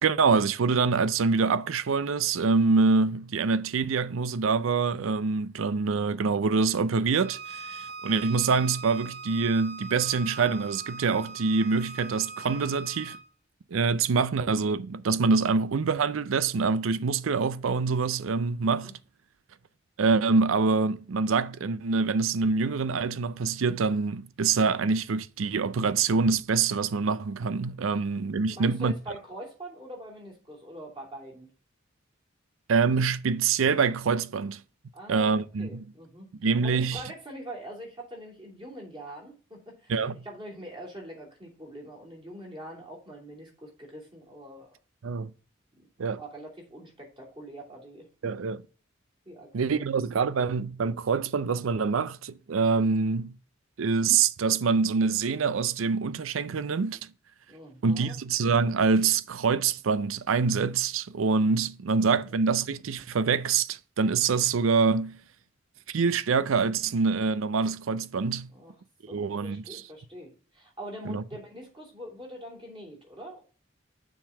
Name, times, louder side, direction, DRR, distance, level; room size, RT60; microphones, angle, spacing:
voice 1, 0.0-13.2 13.7-18.9 20.0-28.9 32.7-34.6 35.1-35.8 36.4-37.0 39.9-40.2 45.0-45.3 46.0-46.2 48.2-48.6 49.5-53.3 53.8-57.1 57.8-65.2 65.9-68.5 69.1-69.8 71.1-71.2, right 4 dB, 85° right, 0.5 m, -25 dB
Bowed string instrument, 7.2-13.2, right 4 dB, 55° right, 2.0 m, -41 dB
voice 2, 18.6-18.9 28.5-31.5 34.9-36.3 36.6-44.7 45.8-45.9 46.1-48.4 49.2-49.8 57.5-58.2 61.9-62.3 68.5-68.7 69.1-73.4, right 1 dB, 25° right, 3.0 m, -44 dB
7.1 x 3.9 x 5.9 m
head